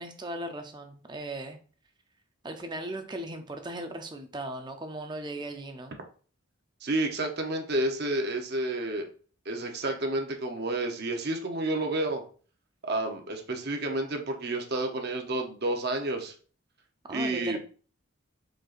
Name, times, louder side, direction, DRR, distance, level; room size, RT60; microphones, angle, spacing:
voice 1, 0.0-1.6 2.4-6.0 17.1-17.6, right 1 dB, 20° right, 6 dB, 0.5 m, -37 dB
voice 2, 6.8-9.1 9.5-12.2 12.8-16.3 17.1-17.6, right 2 dB, 50° right, 3 dB, 0.8 m, -30 dB
4.6 x 4.6 x 2.5 m, 0.41 s
head